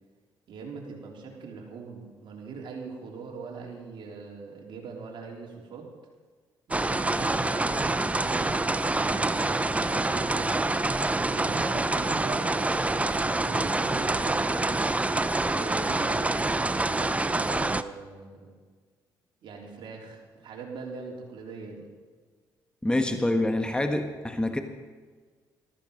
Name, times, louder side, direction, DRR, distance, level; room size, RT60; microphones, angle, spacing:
voice 1, 0.5-5.9 6.7-10.8 11.3-14.9 15.4-18.6 19.4-21.9, right 4 dB, 65° right, 0 dB, 3.4 m, -41 dB
sound 1, 6.7-17.8, right 2 dB, 15° right, 0.7 m, -26 dB
voice 2, 22.8-24.6, left 1 dB, 10° left, 6 dB, 1.4 m, -26 dB
14.0 x 14.0 x 5.2 m, 1.5 s
supercardioid pair, 65°, 9 cm